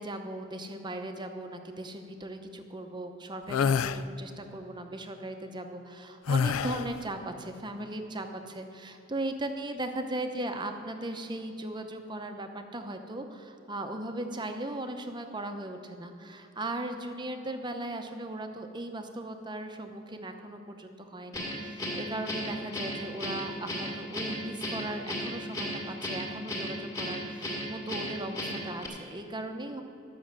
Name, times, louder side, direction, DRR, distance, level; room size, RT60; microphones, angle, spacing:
voice 1, 0.0-29.8, right 1 dB, 20° right, 6 dB, 0.7 m, -38 dB
sound 1, 3.5-4.0 6.3-7.0, left 6 dB, 80° left, 0.4 m, -26 dB
Guitar, 21.3-28.9, equal, 20° left, 2.1 m, -35 dB
12.0 x 6.3 x 7.4 m, 2.8 s
head